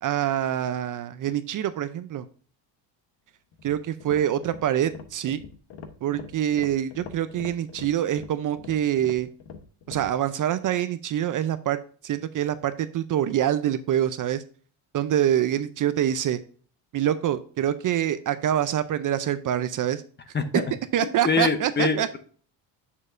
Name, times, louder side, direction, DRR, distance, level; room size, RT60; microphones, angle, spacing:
voice 1, 0.0-2.3 3.6-5.4 6.0-9.3 9.9-14.4 14.9-16.4 16.9-20.0 20.9-22.1, right 11 dB, 45° right, 12 dB, 0.5 m, -25 dB
sound 1, 3.5-10.2, left 6 dB, 60° left, 1.0 m, -43 dB
voice 2, 20.3-20.6 21.0-22.2, left 4 dB, 25° left, 9 dB, 0.7 m, -25 dB
7.1 x 6.4 x 2.5 m, 0.43 s
cardioid pair, 140°, 45 cm